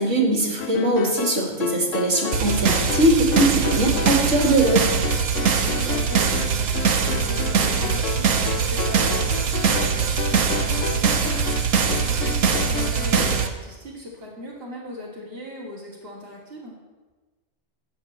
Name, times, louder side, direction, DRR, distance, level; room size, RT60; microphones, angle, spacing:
voice 1, 0.0-5.0, right 1 dB, 70° right, 0 dB, 2.6 m, -21 dB
sound 1, 0.6-13.5, left 8 dB, 75° left, 1.1 m, -32 dB
sound 2, 2.3-13.5, right 6 dB, 90° right, 1.4 m, -22 dB
voice 2, 5.3-16.8, left 1 dB, 45° right, -6 dB, 2.9 m, -38 dB
13.0 x 6.4 x 8.8 m, 1.3 s
omnidirectional pair, 1.3 m